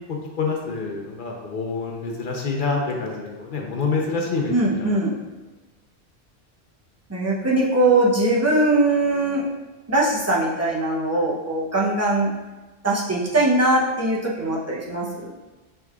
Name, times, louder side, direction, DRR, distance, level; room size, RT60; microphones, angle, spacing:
voice 1, 0.0-5.0, left 4 dB, 55° left, 0 dB, 0.8 m, -27 dB
voice 2, 4.5-5.1 7.1-9.4 9.9-12.3 12.8-15.3, right 2 dB, 20° right, -5 dB, 0.6 m, -21 dB
6.2 x 3.4 x 2.3 m, 1.2 s
omnidirectional pair, 1.1 m